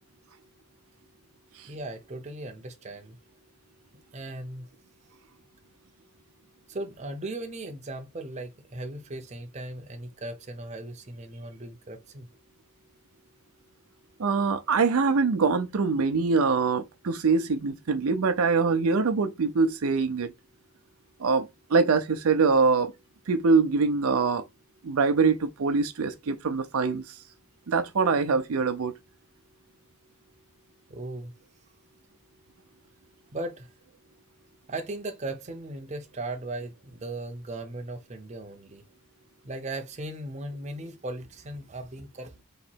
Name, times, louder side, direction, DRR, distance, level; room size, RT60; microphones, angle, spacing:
voice 1, 1.7-3.2 4.1-4.7 6.7-12.3 30.9-31.3 33.3-33.7 34.7-38.8 39.4-42.4, right 2 dB, 30° right, 0.6 m, -37 dB
voice 2, 14.2-20.3 21.2-22.9 23.3-24.4 24.8-27.0 27.7-28.9, right 4 dB, 75° right, 0.5 m, -24 dB
3.2 x 3.0 x 4.4 m
head